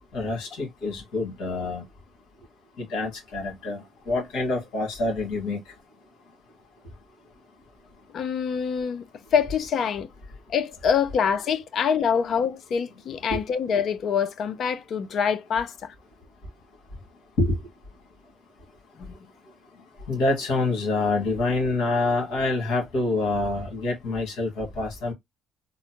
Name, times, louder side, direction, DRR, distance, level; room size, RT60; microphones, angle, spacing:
voice 1, 0.1-1.8 2.8-5.6 13.3-13.4 17.4-17.6 20.1-25.1, left 2 dB, 80° left, 1.9 m, -26 dB
voice 2, 8.1-9.0 9.3-10.1 10.5-15.9 19.0-19.1, left 7 dB, 60° left, 0.5 m, -25 dB
3.8 x 2.1 x 2.9 m
supercardioid pair, 70°, 0 cm